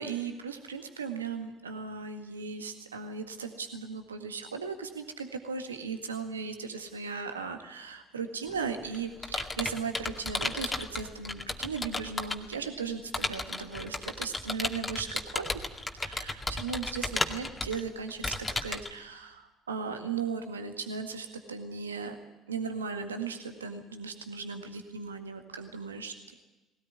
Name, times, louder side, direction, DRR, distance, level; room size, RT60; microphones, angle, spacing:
voice 1, 0.0-15.5 16.0-18.4 18.6-22.2 22.5-26.3, right 5 dB, 85° right, 6 dB, 1.8 m, -37 dB
Computer keyboard, 8.5-12.5 13.1-18.9, left 2 dB, 20° left, 2.2 m, -34 dB
20.5 x 17.5 x 9.8 m, 1.1 s
figure-of-eight pair, 55°, 0 cm